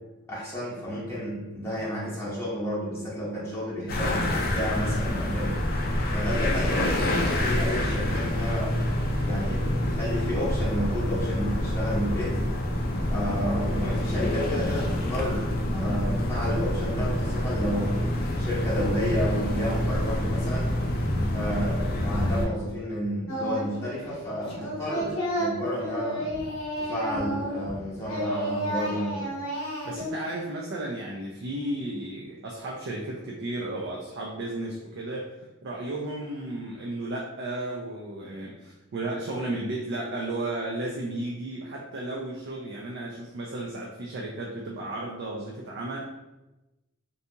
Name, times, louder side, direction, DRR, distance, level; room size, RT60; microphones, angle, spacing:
voice 1, 0.3-5.5 6.1-8.8 9.2-12.4 13.1-18.0 18.4-20.7 21.3-26.3 26.8-29.3, equal, 15° left, -8 dB, 0.8 m, -31 dB
sound 1, 3.9-22.5, left 1 dB, 50° left, 0.4 m, -27 dB
Singing, 23.3-23.8 24.1-27.8 28.0-30.1, right 1 dB, 90° left, 0.7 m, -31 dB
voice 2, 29.8-35.3 35.6-46.0, right 2 dB, 60° right, -2 dB, 0.4 m, -34 dB
2.6 x 2.3 x 2.7 m, 1.0 s
head